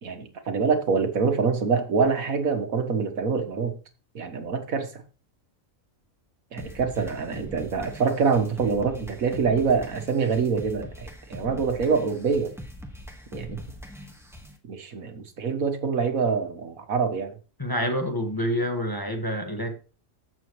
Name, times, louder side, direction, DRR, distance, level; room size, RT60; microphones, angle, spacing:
voice 1, 0.0-3.8 4.1-5.0 6.5-12.5 13.3-13.6 14.7-17.3, right 5 dB, 85° right, 1.8 m, -25 dB
sound 1, 6.6-14.6, equal, ahead, 1.5 m, -42 dB
voice 2, 17.6-19.8, equal, 15° left, 1.6 m, -27 dB
14.0 x 7.3 x 3.2 m
omnidirectional pair, 1.4 m